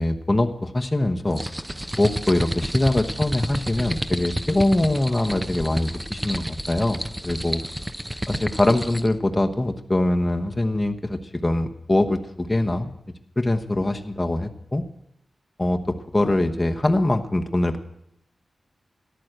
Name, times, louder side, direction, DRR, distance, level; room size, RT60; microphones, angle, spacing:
voice 1, 0.0-1.4 2.0-7.6 8.3-12.9 13.4-14.8 15.6-17.8, left 1 dB, 15° left, 4 dB, 1.0 m, -23 dB
sound 1, 1.3-9.1, equal, 10° right, 0.8 m, -30 dB
13.5 x 11.5 x 7.9 m, 0.81 s
wide cardioid pair, 125°, 0 cm